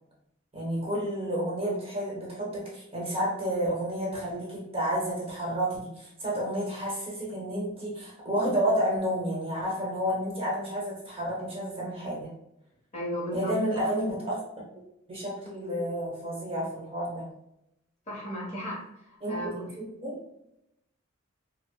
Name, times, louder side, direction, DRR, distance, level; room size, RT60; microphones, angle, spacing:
voice 1, 0.5-12.4 13.3-14.4 15.1-17.3 19.2-20.2, equal, 25° right, -5 dB, 0.9 m, -30 dB
voice 2, 12.9-13.5 18.1-18.8 19.3-19.7, equal, 35° left, -4 dB, 1.0 m, -34 dB
4.4 x 2.0 x 2.2 m, 0.83 s
head